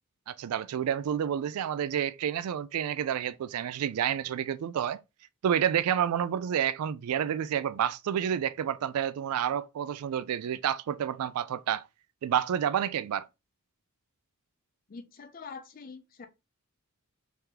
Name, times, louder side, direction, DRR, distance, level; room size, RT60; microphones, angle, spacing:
voice 1, 0.3-5.0 5.4-11.9 12.2-13.3, right 9 dB, 80° right, 0.3 m, -29 dB
voice 2, 14.9-16.3, left 5 dB, 40° left, 0.4 m, -45 dB
3.5 x 3.3 x 2.9 m
head